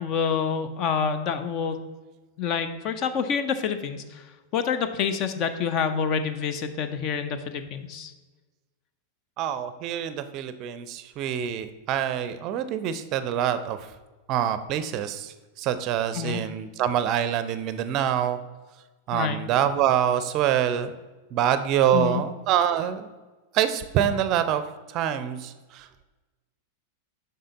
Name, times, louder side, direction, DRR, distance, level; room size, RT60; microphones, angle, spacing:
voice 1, 0.0-1.8 2.4-4.2 4.5-8.1 16.1-16.4 19.1-19.4 21.9-22.2, left 6 dB, 40° left, 10 dB, 0.6 m, -27 dB
voice 2, 9.4-13.9 14.3-18.4 19.1-20.9 21.3-23.1 23.5-24.6 24.9-26.0, right 10 dB, 40° right, 12 dB, 0.5 m, -25 dB
7.5 x 5.5 x 4.0 m, 1.2 s
figure-of-eight pair, 90°, 0 cm